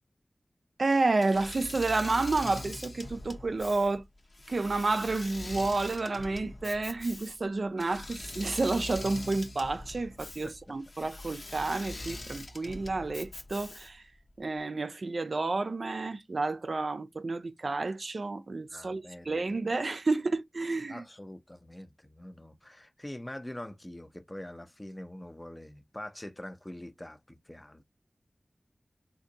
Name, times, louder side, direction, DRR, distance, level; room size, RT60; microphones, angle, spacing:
voice 1, 0.8-4.0 4.5-14.0 14.4-21.0, right 3 dB, 70° right, 0.4 m, -30 dB
Engine / Mechanisms, 1.2-14.1, left 1 dB, 60° left, 0.7 m, -42 dB
voice 2, 18.7-19.6 20.9-27.8, left 1 dB, 20° left, 0.5 m, -44 dB
3.7 x 2.5 x 2.7 m
wide cardioid pair, 65°, 0 cm